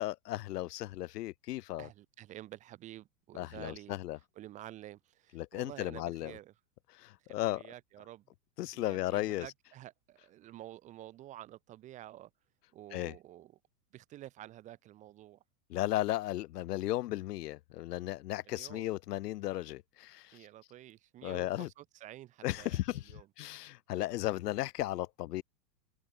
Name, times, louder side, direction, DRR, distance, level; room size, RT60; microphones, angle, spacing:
voice 1, 0.0-1.9 3.3-4.2 5.3-6.4 6.9-7.6 8.6-9.5 12.9-13.1 15.7-20.4 21.2-21.7 22.4-23.1 23.4-25.4, left 16 dB, 70° left, 0.9 m, -35 dB
voice 2, 1.8-3.9 4.4-6.5 7.3-8.2 8.7-12.3 12.7-13.6 13.9-15.4 18.4-18.9 20.3-23.3, right 14 dB, 15° right, 0.8 m, -50 dB
open air
supercardioid pair, 165°, 49 cm